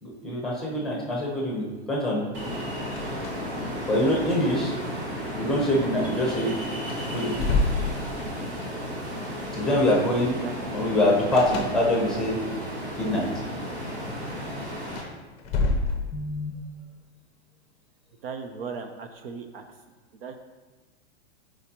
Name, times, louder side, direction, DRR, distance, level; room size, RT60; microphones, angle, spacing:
voice 1, 0.0-2.3 3.9-4.8 5.4-6.5 7.1-7.4 9.5-10.4 10.7-12.4 13.0-13.3 16.1-16.5, left 1 dB, ahead, -2 dB, 1.0 m, -24 dB
Ocean, 2.3-15.0, equal, 35° right, 1.9 m, -33 dB
sound 1, 2.8-3.7 3.9-4.1 6.3-6.4 6.8-8.5 11.3-12.3 14.8-16.5, left 3 dB, 20° left, 0.7 m, -29 dB
voice 2, 18.2-19.6 20.2-20.4, right 5 dB, 55° right, 7 dB, 0.7 m, -37 dB
12.5 x 4.9 x 3.0 m, 1.3 s
supercardioid pair, 160°, 34 cm